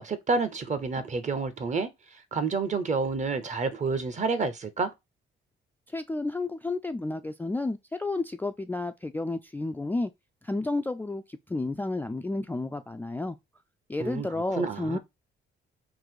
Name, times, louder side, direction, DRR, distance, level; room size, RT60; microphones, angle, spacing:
voice 1, 0.0-1.9 2.3-4.9 14.0-15.0, right 4 dB, 35° right, 0.8 m, -29 dB
voice 2, 5.9-10.1 10.4-13.4 13.9-15.0, left 2 dB, 10° left, 0.3 m, -31 dB
3.9 x 2.6 x 4.6 m
cardioid pair, 90°, 20 cm